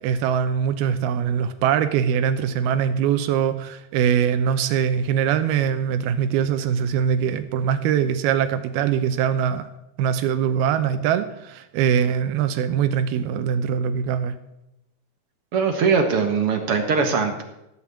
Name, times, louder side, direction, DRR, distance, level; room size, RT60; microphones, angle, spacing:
voice 1, 0.0-9.7 10.0-14.4, right 8 dB, 90° right, 9 dB, 2.8 m, -22 dB
voice 2, 15.5-17.4, right 5 dB, 55° right, 5 dB, 1.7 m, -21 dB
16.5 x 6.2 x 8.6 m, 0.90 s
omnidirectional pair, 4.3 m